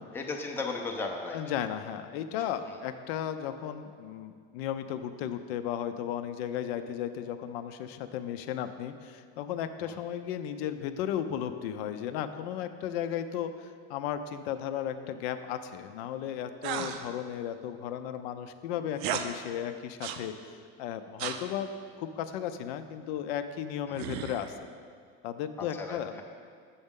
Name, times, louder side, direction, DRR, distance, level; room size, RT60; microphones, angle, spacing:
voice 1, 0.1-1.4 9.9-10.0 23.9-24.0 25.6-26.2, left 3 dB, 5° left, 1 dB, 0.5 m, -35 dB
voice 2, 1.3-21.7 22.0-24.5 25.2-26.2, left 9 dB, 80° left, 9 dB, 0.5 m, -35 dB
sound 1, 16.6-17.1 18.9-19.3 20.0-20.3 21.2-21.4 24.0-24.6, right 8 dB, 75° right, 0.5 m, -34 dB
7.0 x 5.4 x 3.6 m, 2.1 s
supercardioid pair, 135°, 31 cm